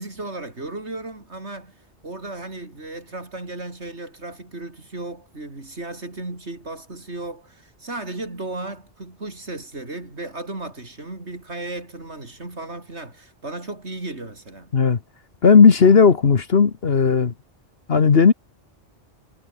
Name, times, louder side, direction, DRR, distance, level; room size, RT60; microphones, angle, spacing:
voice 1, 0.0-14.7, right 2 dB, 70° right, 5.0 m, -35 dB
voice 2, 15.4-17.3 17.9-18.3, left 5 dB, 60° left, 1.6 m, -14 dB
omnidirectional pair, 1.2 m